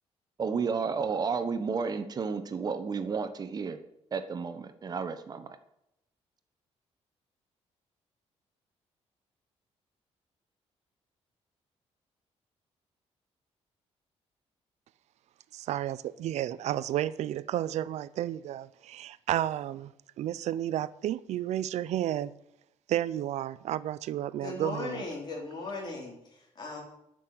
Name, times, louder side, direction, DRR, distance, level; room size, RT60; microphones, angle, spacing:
voice 1, 0.4-3.8 4.1-5.6, right 5 dB, 35° right, 1.1 m, -32 dB
voice 2, 15.5-19.9 20.2-22.3 22.9-25.0, right 12 dB, 80° right, 0.6 m, -32 dB
voice 3, 24.4-26.8, left 3 dB, 40° left, 4.0 m, -38 dB
11.0 x 6.4 x 8.7 m
cardioid pair, 140°, 11 cm